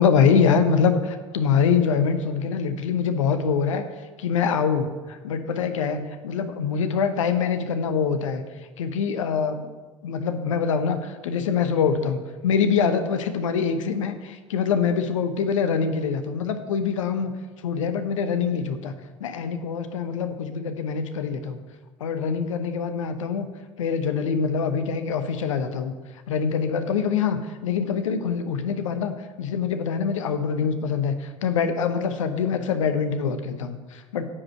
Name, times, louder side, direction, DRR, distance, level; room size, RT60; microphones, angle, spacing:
voice 1, 0.0-3.8 4.2-8.4 8.8-9.7 10.0-17.3 17.6-18.9 19.2-21.6 22.0-23.5 23.8-25.9 26.3-34.2, left 6 dB, 75° left, 9 dB, 0.9 m, -24 dB
9.8 x 5.2 x 7.6 m, 1.3 s
figure-of-eight pair, 70°, 16 cm